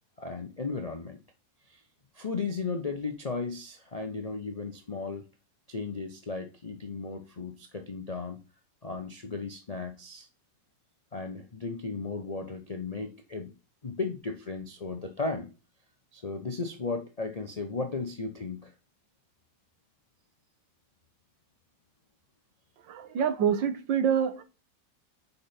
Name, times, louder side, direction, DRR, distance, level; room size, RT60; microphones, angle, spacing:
voice 1, 0.2-1.2 1.6-1.8 2.1-5.2 5.7-8.4 8.8-10.3 11.1-13.5 13.8-15.5 16.1-18.7, left 4 dB, 90° left, 0.3 m, -35 dB
voice 2, 22.8-24.4, right 8 dB, 80° right, 1.7 m, -26 dB
5.5 x 5.1 x 4.3 m
omnidirectional pair, 2.0 m